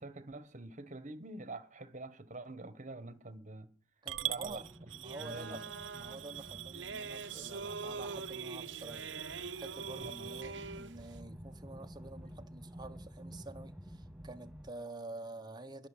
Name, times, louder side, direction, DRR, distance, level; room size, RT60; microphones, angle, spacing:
voice 1, 0.0-3.7 4.2-5.6 10.0-10.3, right 2 dB, 40° right, 1.5 m, -46 dB
voice 2, 4.0-4.7 5.0-5.6 5.9-9.1 9.6-15.9, right 2 dB, 20° right, 1.3 m, -48 dB
Coin (dropping) / Glass, 4.1-10.4, right 15 dB, 85° right, 0.7 m, -44 dB
sound 1, 4.4-14.7, equal, 5° right, 0.8 m, -52 dB
sound 2, 5.0-11.1, right 4 dB, 65° right, 1.1 m, -44 dB
21.5 x 7.4 x 7.5 m
head